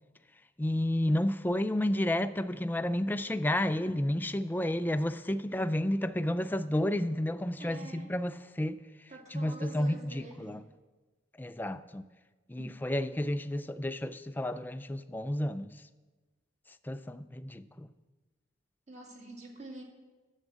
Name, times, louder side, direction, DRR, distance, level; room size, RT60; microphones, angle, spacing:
voice 1, 0.6-8.8 9.3-10.6 11.4-12.0 12.5-15.7 16.8-17.9, left 1 dB, 10° left, 0.3 m, -31 dB
voice 2, 7.6-8.1 9.1-10.6 12.6-12.7 18.9-19.8, right 2 dB, 35° right, 2.0 m, -46 dB
10.5 x 7.3 x 8.0 m
head